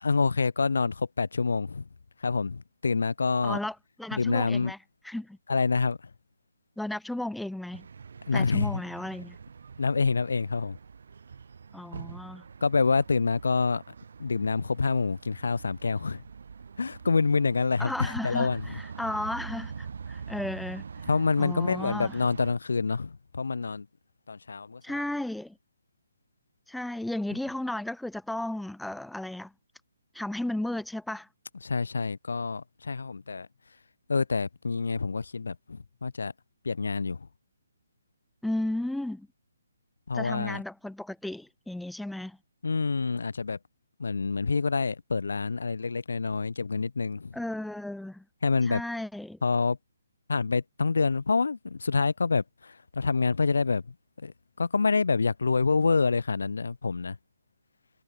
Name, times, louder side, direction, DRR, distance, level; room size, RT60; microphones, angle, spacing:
voice 1, 0.0-1.9 2.2-3.6 4.1-4.7 5.5-6.0 8.3-8.8 9.8-10.8 12.6-13.8 14.2-16.2 16.8-18.8 21.1-23.9 24.3-25.0 31.6-33.5 34.1-36.3 36.6-37.3 40.1-40.6 42.6-43.6 44.0-47.4 48.4-48.8 49.4-49.8 50.3-57.2, left 4 dB, 85° left, 0.8 m, -27 dB
voice 2, 3.4-4.8 5.0-5.4 6.8-7.9 8.3-9.4 11.7-12.4 17.8-20.8 21.4-22.2 24.8-25.6 26.7-29.5 30.1-31.3 38.4-39.3 40.1-42.4 47.3-48.2 48.7-49.4, left 1 dB, ahead, 0.5 m, -34 dB
sound 1, 7.7-22.5, right 6 dB, 50° right, 1.2 m, -44 dB
hypercardioid pair, 180°, 0 cm